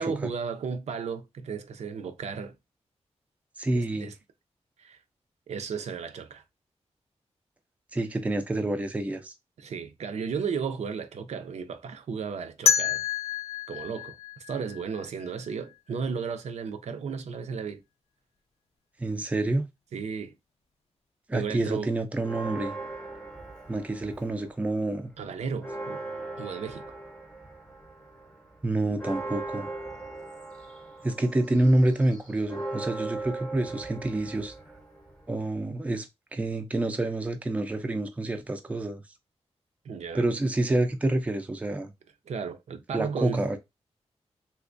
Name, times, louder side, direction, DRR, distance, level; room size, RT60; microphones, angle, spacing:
voice 1, 0.0-2.5 3.7-4.1 4.8-5.0 5.5-6.4 9.6-13.0 13.7-14.2 14.5-17.8 19.9-20.3 21.3-21.9 25.2-26.0 26.4-26.9 39.8-40.3 42.3-43.4, right 6 dB, 80° right, 0.5 m, -34 dB
voice 2, 3.6-4.1 7.9-9.3 19.0-19.7 21.3-22.7 23.7-25.1 28.6-29.7 31.0-34.5 35.3-39.0 40.1-41.9 42.9-43.6, right 2 dB, 10° right, 0.4 m, -27 dB
sound 1, 12.7-15.5, left 8 dB, 65° left, 0.4 m, -28 dB
Church bell, 22.2-24.6 24.9-25.0 25.4-35.4, right 2 dB, 10° left, 0.7 m, -39 dB
3.3 x 2.8 x 2.5 m
wide cardioid pair, 160°, 11 cm